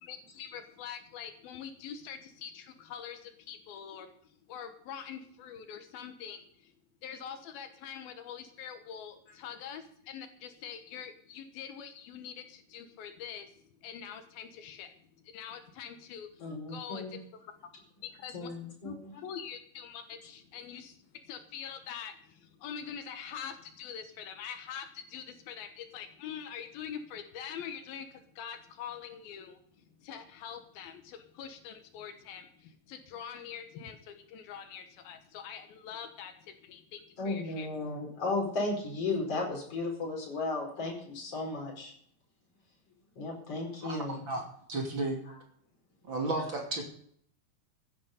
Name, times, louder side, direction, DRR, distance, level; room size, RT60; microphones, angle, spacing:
voice 1, 0.0-4.1 4.5-6.7 7.0-13.5 13.8-14.9 15.2-17.2 18.0-18.5 18.8-21.0 21.3-29.6 30.0-37.7, left 8 dB, 80° left, 7 dB, 3.1 m, -44 dB
voice 2, 16.4-17.2 18.3-19.1 37.2-41.9 43.2-44.2 45.3-45.4, left 3 dB, 40° left, -1 dB, 5.5 m, -35 dB
voice 3, 43.8-44.4 44.7-45.2 46.0-46.8, right 2 dB, 35° right, 1 dB, 3.1 m, -33 dB
16.0 x 11.0 x 5.2 m, 0.63 s
omnidirectional pair, 4.3 m